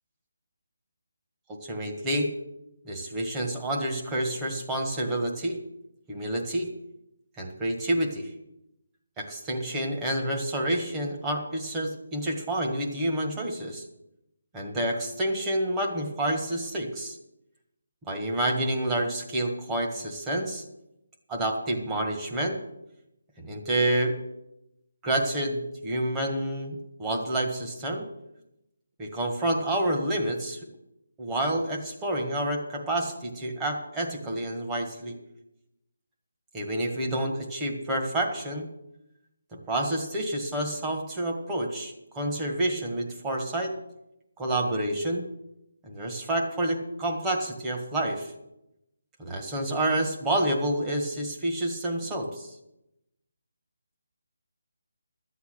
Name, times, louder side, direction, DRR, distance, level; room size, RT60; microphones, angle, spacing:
voice 1, 1.6-2.3 2.8-5.6 6.1-6.7 7.4-8.3 9.2-13.8 14.5-17.2 18.1-20.6 21.3-22.6 23.4-24.2 25.0-28.1 29.0-30.6 31.2-35.2 36.5-38.6 39.5-43.7 44.4-45.2 45.8-48.3 49.2-52.5, right 1 dB, 15° right, 0 dB, 1.6 m, -28 dB
12.5 x 8.2 x 6.7 m, 0.87 s
figure-of-eight pair, 165°, 0 cm